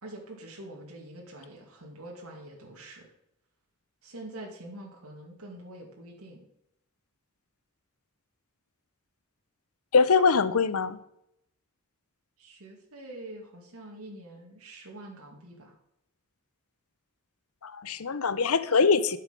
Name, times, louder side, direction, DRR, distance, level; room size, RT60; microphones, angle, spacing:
voice 1, 0.0-3.1 4.0-6.5 12.4-15.7, right 1 dB, 80° right, 2.4 m, -45 dB
voice 2, 9.9-11.0 17.6-19.2, left 5 dB, 75° left, 0.7 m, -23 dB
11.0 x 6.9 x 5.3 m
head